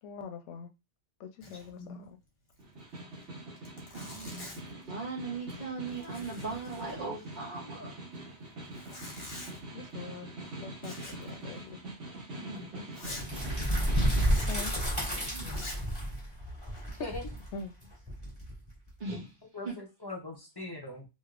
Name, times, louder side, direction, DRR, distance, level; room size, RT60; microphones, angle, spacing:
voice 1, 0.0-0.7 1.2-2.2 9.7-10.3 10.6-11.8 14.5-14.7 17.0-17.1 17.5-17.7, left 5 dB, 85° left, 0.9 m, -43 dB
Zipper (clothing), 1.4-1.8 2.0-2.1 2.5-2.6 3.2-3.3 3.6-4.8 5.3-5.6 5.9-7.3 8.6-9.6 10.8-11.3 11.6-11.7 12.2-12.3 12.9-13.3 14.2-14.6 15.4-15.9 16.5-17.1, left 2 dB, 60° left, 1.3 m, -46 dB
Snare drum, 2.6-14.4, right 2 dB, 80° right, 1.4 m, -44 dB
voice 2, 3.9-8.0 12.3-13.5 15.3-15.9 19.0-19.4 19.6-19.7, right 3 dB, 45° right, 1.0 m, -40 dB
sound 1, 13.1-18.9, equal, 5° right, 1.8 m, -31 dB
voice 3, 19.5-21.1, left 2 dB, 30° left, 0.5 m, -41 dB
3.1 x 2.8 x 2.4 m
omnidirectional pair, 1.2 m